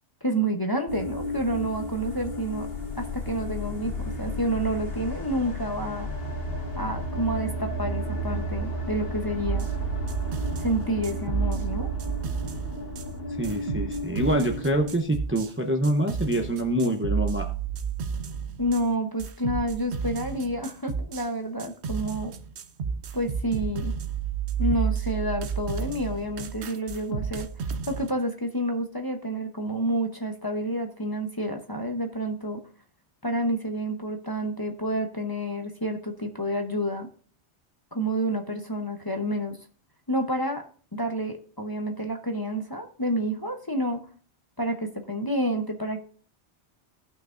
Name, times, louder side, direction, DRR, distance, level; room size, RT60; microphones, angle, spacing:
voice 1, 0.2-2.7 3.0-3.9 4.2-6.1 6.8-9.7 10.6-11.9 18.6-22.3 23.1-23.9 24.6-32.6 33.2-37.1 37.9-39.6 40.1-40.6 40.9-44.0 44.6-46.0, right 1 dB, 20° left, 3 dB, 0.8 m, -29 dB
sound 1, 0.9-15.0, equal, 55° left, 1.6 m, -33 dB
sound 2, 9.4-13.1 13.4-15.5 15.8-18.9 19.2-21.3 21.6-28.1, right 6 dB, 70° right, 1.0 m, -31 dB
voice 2, 13.4-17.5, right 1 dB, 15° right, 4 dB, 0.7 m, -25 dB
17.0 x 6.0 x 2.5 m, 0.42 s
omnidirectional pair, 1.2 m